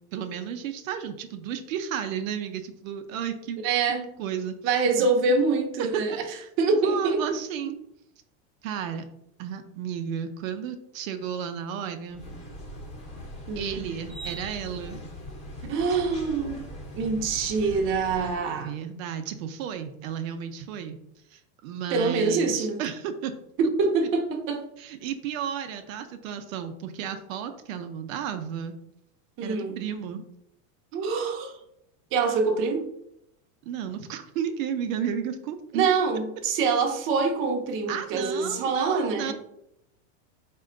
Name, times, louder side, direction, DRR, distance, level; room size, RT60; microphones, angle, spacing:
voice 1, 0.1-3.6 4.2-5.1 5.8-7.7 8.6-9.1 9.4-12.2 13.6-15.0 18.5-21.0 21.3-23.3 24.8-28.7 29.4-30.2 33.7-35.9 37.9-39.3, right 8 dB, 75° right, 7 dB, 0.6 m, -33 dB
voice 2, 3.6-4.1 4.6-6.2 6.6-7.2 13.5-13.9 15.7-16.6 16.9-18.7 21.9-22.8 23.6-24.6 29.4-29.8 30.9-31.6 32.1-32.9 35.7-39.3, right 4 dB, 30° right, 2 dB, 0.6 m, -25 dB
sound 1, 12.1-18.4, equal, 15° left, 0.9 m, -40 dB
4.2 x 2.2 x 3.7 m, 0.78 s
supercardioid pair, 140°, 40 cm